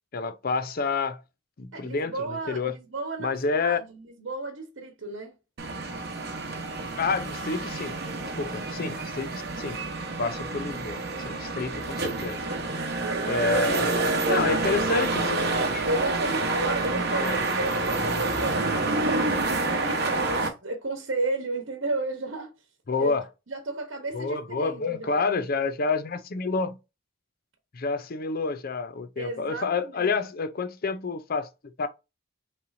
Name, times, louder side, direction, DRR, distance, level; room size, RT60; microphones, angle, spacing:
voice 1, 0.1-1.2 1.6-2.7 3.2-3.8 7.0-8.0 8.4-9.8 10.2-12.4 13.3-13.9 14.3-15.4 15.7-15.9 17.2-17.4 22.9-23.2 24.1-26.8 27.7-31.5 31.8-31.9, left 4 dB, 50° left, 0.5 m, -29 dB
voice 2, 1.7-5.3 13.0-14.8 15.9-22.5 23.0-23.1 23.5-25.2 29.2-30.2, right 2 dB, 80° right, 1.1 m, -33 dB
sound 1, 5.6-20.5, right 2 dB, 55° right, 1.1 m, -28 dB
5.5 x 3.3 x 2.6 m
head